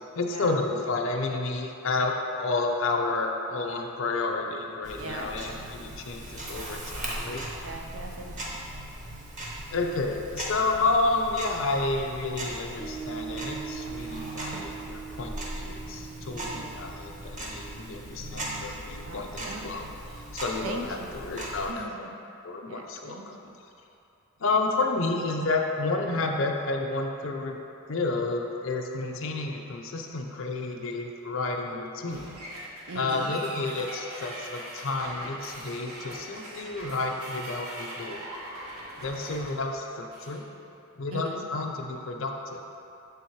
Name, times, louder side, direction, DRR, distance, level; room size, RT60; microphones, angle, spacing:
voice 1, 0.1-7.4 9.7-19.9 20.3-22.1 22.4-23.3 24.4-27.6 27.9-32.3 32.9-38.3 39.0-40.4 41.0-42.6, left 3 dB, 60° left, 2 dB, 0.5 m, -30 dB
Tick-tock, 4.8-21.7, right 1 dB, 35° right, 0.8 m, -39 dB
voice 2, 5.0-5.7 7.6-8.7 16.3-17.0 19.0-19.8 20.6-21.2 21.7-22.1 22.7-23.6 32.9-33.3 41.1-41.4, right 2 dB, 70° right, 2 dB, 0.6 m, -40 dB
Piano, 12.8-19.6, right 7 dB, 5° left, 0.4 m, -42 dB
sound 1, 32.1-40.4, right 1 dB, 85° right, 1.2 m, -41 dB
6.8 x 3.5 x 4.5 m, 2.8 s
head